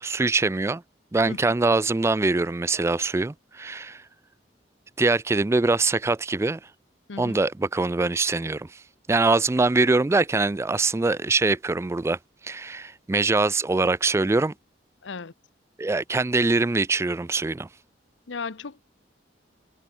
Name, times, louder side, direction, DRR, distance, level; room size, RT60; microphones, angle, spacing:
voice 1, 0.0-0.8 1.1-4.0 5.0-6.6 7.2-8.8 9.1-12.2 12.4-14.5 15.8-17.7, right 3 dB, 15° right, 0.3 m, -23 dB
voice 2, 7.1-7.4 15.0-15.3 18.3-18.8, left 4 dB, 75° left, 0.8 m, -35 dB
head